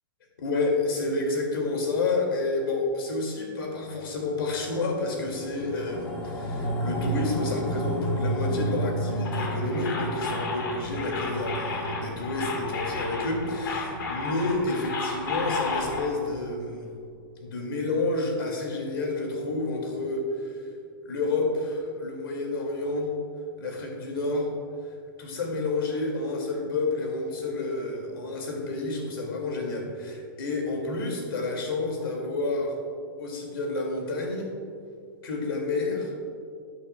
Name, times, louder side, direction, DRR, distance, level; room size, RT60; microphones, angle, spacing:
voice 1, 0.4-16.9 17.4-20.7 21.0-23.1 23.6-24.5 24.8-32.7 33.2-34.5 35.2-36.1, left 2 dB, 85° left, 1 dB, 2.3 m, -29 dB
sound 1, 5.3-15.9 16.2-16.3, right 1 dB, 10° left, 0.6 m, -32 dB
sound 2, 9.2-16.1, left 4 dB, 70° left, 1.6 m, -33 dB
13.0 x 8.6 x 2.3 m, 2.4 s
supercardioid pair, 175°, 12 cm